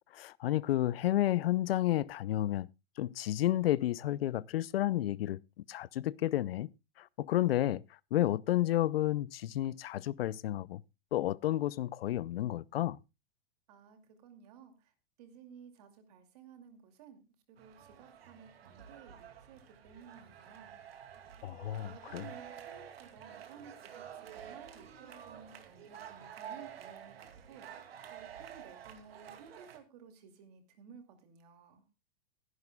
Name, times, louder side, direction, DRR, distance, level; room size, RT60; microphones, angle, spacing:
voice 1, 0.1-2.7 3.0-6.7 7.0-10.8 11.1-13.0 21.4-22.3, left 14 dB, 75° left, 0.5 m, -31 dB
voice 2, 13.7-14.9 15.2-17.2 17.5-20.8 21.6-31.8, right 6 dB, 40° right, 2.4 m, -56 dB
sound 1, 17.6-29.8, right 9 dB, 75° right, 2.5 m, -50 dB
20.5 x 11.0 x 2.3 m
supercardioid pair, 175°, 30 cm